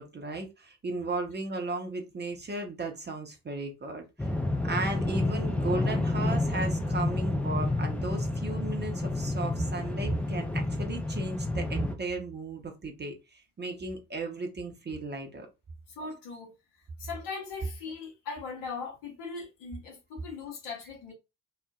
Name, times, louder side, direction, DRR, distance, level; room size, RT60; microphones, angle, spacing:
voice 1, 0.0-4.3 4.6-15.5, right 2 dB, 25° right, 0.7 m, -35 dB
sound 1, 4.2-11.9, left 2 dB, 5° left, 0.3 m, -29 dB
voice 2, 15.9-16.5 17.0-21.1, left 4 dB, 70° left, 1.1 m, -39 dB
3.0 x 2.0 x 2.3 m
figure-of-eight pair, 40°, 46 cm